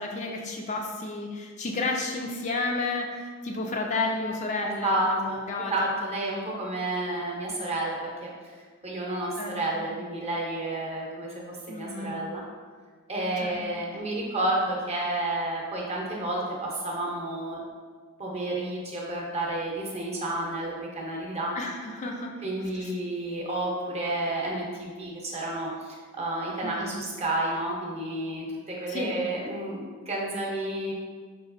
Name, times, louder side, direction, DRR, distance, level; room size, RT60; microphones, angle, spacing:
voice 1, 0.0-5.9 9.4-9.9 11.7-12.2 13.4-13.9 21.6-22.9 26.6-27.1 28.9-29.3, left 3 dB, 35° left, 1 dB, 0.3 m, -32 dB
voice 2, 4.6-5.4 5.7-8.3 8.8-12.4 13.1-17.6 18.2-21.5 22.4-30.9, right 1 dB, 30° right, -3 dB, 0.7 m, -30 dB
5.0 x 2.9 x 2.5 m, 1.5 s
head